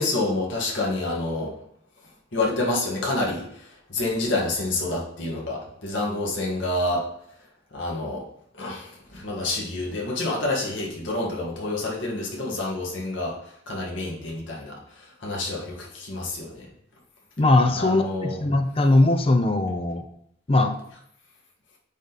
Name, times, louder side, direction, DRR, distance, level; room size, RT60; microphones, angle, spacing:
voice 1, 0.0-1.5 2.3-7.0 7.7-8.2 8.5-16.7 17.7-18.4, left 2 dB, 85° left, -3 dB, 1.8 m, -28 dB
voice 2, 17.4-20.0 20.5-20.7, left 2 dB, 30° left, 6 dB, 0.5 m, -20 dB
9.0 x 3.6 x 4.1 m, 0.71 s
head